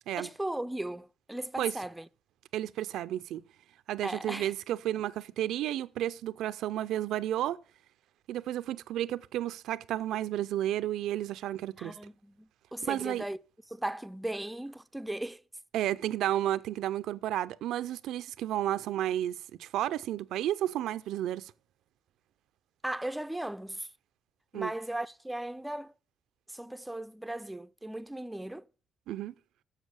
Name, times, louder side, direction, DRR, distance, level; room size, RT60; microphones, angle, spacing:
voice 1, 0.2-2.1 4.0-4.5 11.8-13.4 13.7-15.4 22.8-23.9 24.5-25.9 26.5-28.6, right 1 dB, 5° right, 0.4 m, -37 dB
voice 2, 2.5-3.4 3.9-7.6 8.3-12.0 12.8-13.2 15.7-21.5 24.5-24.7 29.1-29.3, right 12 dB, 85° right, 0.4 m, -32 dB
7.3 x 6.6 x 6.4 m
cardioid pair, 90°, 0 cm